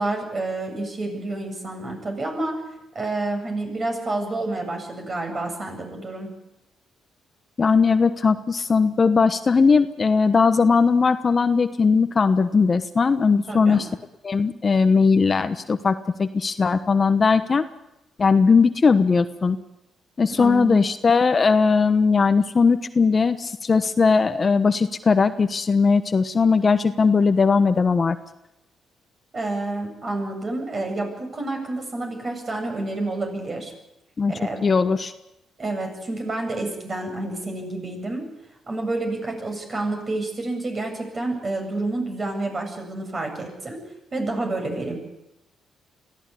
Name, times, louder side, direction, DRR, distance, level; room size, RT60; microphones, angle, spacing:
voice 1, 0.0-2.6 2.9-6.3 13.5-13.8 20.3-20.8 29.3-33.7 34.3-34.6 35.6-38.3 38.7-43.8 44.1-45.0, right 2 dB, 35° right, 4 dB, 7.8 m, -29 dB
voice 2, 7.6-13.9 14.2-17.6 18.2-19.6 20.2-28.2 34.2-34.3 34.6-35.1, left 5 dB, 35° left, 10 dB, 1.1 m, -19 dB
23.5 x 15.5 x 10.0 m, 0.93 s
cardioid pair, 90°, 0 cm